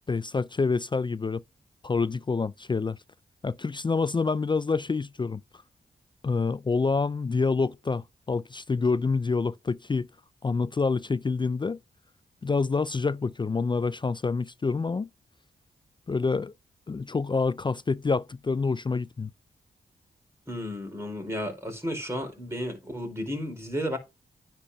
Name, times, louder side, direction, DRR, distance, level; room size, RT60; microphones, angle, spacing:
voice 1, 0.1-1.4 1.8-3.0 3.4-5.4 6.2-10.1 10.4-11.8 12.4-15.1 16.1-16.5 16.9-19.3, left 4 dB, 25° left, 0.4 m, -27 dB
voice 2, 20.5-24.0, equal, 15° right, 4.7 m, -33 dB
9.8 x 4.5 x 5.7 m
supercardioid pair, 45°, 18 cm